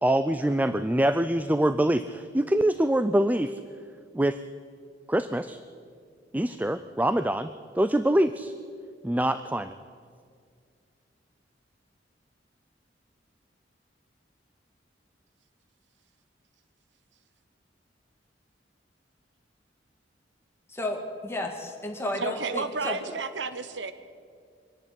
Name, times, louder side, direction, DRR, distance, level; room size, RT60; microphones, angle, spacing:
voice 1, 0.0-3.5 4.1-4.4 5.1-5.6 6.3-7.5 7.8-8.5 9.0-9.7, right 1 dB, 10° right, 12 dB, 0.4 m, -24 dB
voice 2, 20.7-23.0, left 2 dB, 15° left, 2 dB, 2.2 m, -32 dB
voice 3, 22.2-23.9, right 4 dB, 80° right, 12 dB, 1.1 m, -32 dB
24.5 x 10.5 x 10.0 m, 2.2 s
head